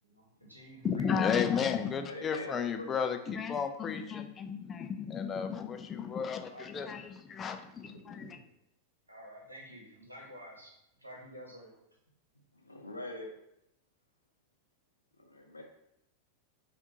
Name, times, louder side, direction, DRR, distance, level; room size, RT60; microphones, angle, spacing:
voice 1, 0.0-1.1 6.5-7.0 7.8-8.4 9.1-10.7 11.0-11.8, equal, 85° right, -2 dB, 1.1 m, -50 dB
voice 2, 0.8-8.3, left 7 dB, 25° left, 7 dB, 0.4 m, -33 dB
voice 3, 2.0-3.1 12.5-13.3 15.2-15.6, left 2 dB, 80° left, 2 dB, 0.7 m, -43 dB
5.6 x 2.5 x 2.9 m, 0.84 s
figure-of-eight pair, 90°, 0 cm